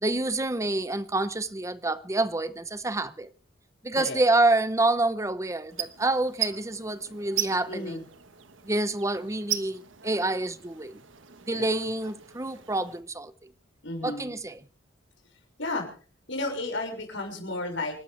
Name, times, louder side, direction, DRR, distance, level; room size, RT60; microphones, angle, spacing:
voice 1, 0.0-3.3 3.8-8.0 8.7-11.0 11.5-13.3 14.0-14.6, right 2 dB, 15° right, 0.9 m, -27 dB
voice 2, 3.9-4.2 7.7-8.0 11.5-11.7 13.8-14.4 15.6-15.9 16.3-18.0, left 2 dB, 70° left, 6.1 m, -33 dB
sound 1, 5.7-13.0, right 11 dB, 75° right, 1.3 m, -38 dB
28.0 x 12.0 x 3.4 m
head